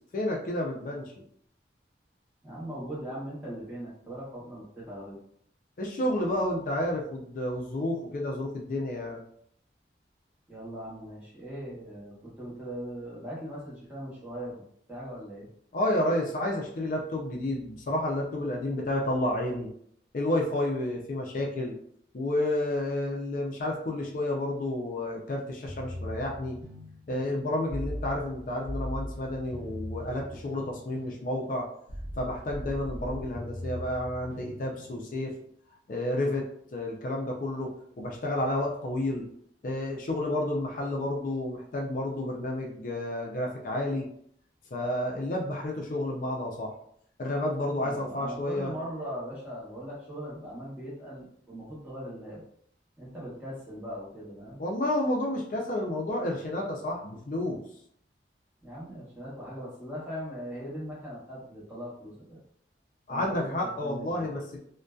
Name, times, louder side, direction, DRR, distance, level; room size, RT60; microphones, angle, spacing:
voice 1, 0.1-1.1 5.8-9.2 15.7-19.7 20.1-21.7 22.1-26.6 27.1-31.7 32.1-35.3 35.9-36.5 36.7-37.7 38.0-39.3 39.6-44.1 44.7-46.7 47.2-48.7 54.6-57.6 63.1-64.6, left 1 dB, 45° left, 0 dB, 0.4 m, -30 dB
voice 2, 2.4-5.2 10.5-14.5 14.9-15.5 47.7-52.4 53.0-54.6 58.6-62.4 63.1-64.3, equal, 10° right, -7 dB, 0.9 m, -40 dB
sound 1, 25.7-35.4, equal, 85° right, 0.8 m, -39 dB
2.6 x 2.2 x 2.2 m, 0.66 s
head